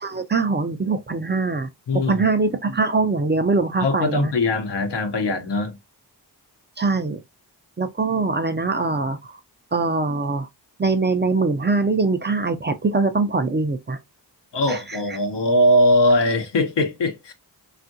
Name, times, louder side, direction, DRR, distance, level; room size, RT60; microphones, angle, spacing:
voice 1, 0.0-1.7 2.1-4.3 6.8-7.2 7.8-9.4 9.7-10.5 10.8-14.0 14.7-15.2, right 3 dB, 25° right, 0.4 m, -22 dB
voice 2, 1.9-2.3 3.8-5.8 14.5-17.3, left 1 dB, 80° left, 0.9 m, -20 dB
3.4 x 2.4 x 2.6 m
wide cardioid pair, 70°, 41 cm